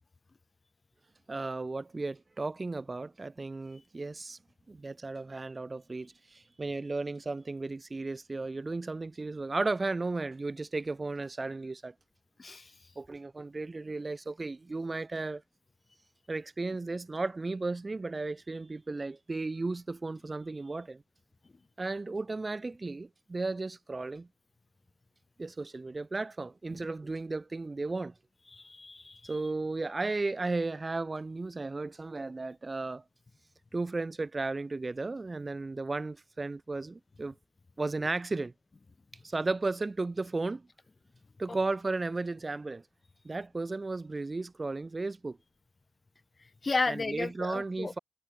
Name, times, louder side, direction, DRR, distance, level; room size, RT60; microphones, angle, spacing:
voice 1, 1.3-4.4 4.7-11.9 13.0-15.4 16.3-21.0 21.8-24.3 25.4-28.1 29.3-33.0 33.7-37.4 37.8-38.5 39.2-40.7 41.4-42.8 43.2-45.4 46.9-48.0, right 3 dB, 25° right, 1.7 m, -34 dB
voice 2, 12.4-12.7 28.5-29.4 41.5-41.6 46.6-47.9, left 3 dB, 30° left, 1.3 m, -33 dB
cardioid pair, 100°, 0 cm